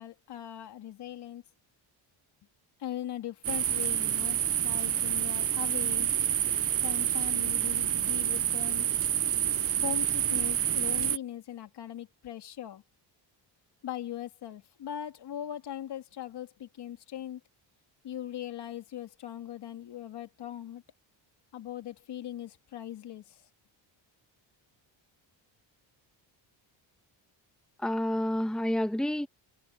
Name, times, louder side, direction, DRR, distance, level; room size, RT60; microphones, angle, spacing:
voice 1, 0.0-1.4 2.8-4.4 4.6-6.1 6.8-8.9 9.8-12.8 13.8-17.4 18.0-20.8 21.5-23.2, left 11 dB, 60° left, 2.8 m, -40 dB
sound 1, 3.4-11.2, right 10 dB, 35° right, 0.4 m, -28 dB
voice 2, 27.8-29.3, left 1 dB, ahead, 1.5 m, -29 dB
cardioid pair, 145°, 45 cm